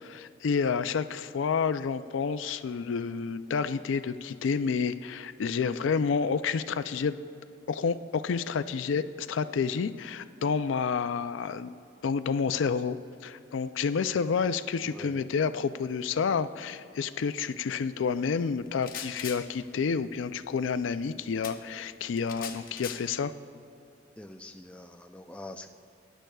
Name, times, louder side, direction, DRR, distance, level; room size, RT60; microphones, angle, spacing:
voice 1, 0.0-7.2 7.7-11.7 12.0-13.0 13.2-23.3, left 5 dB, 90° left, 12 dB, 0.4 m, -29 dB
sound 1, 18.7-19.4 21.4-21.6 22.2-23.0, left 8 dB, 50° left, 0.7 m, -39 dB
voice 2, 24.2-25.7, left 1 dB, 5° left, 5 dB, 0.4 m, -44 dB
19.5 x 10.0 x 2.3 m, 2.6 s
head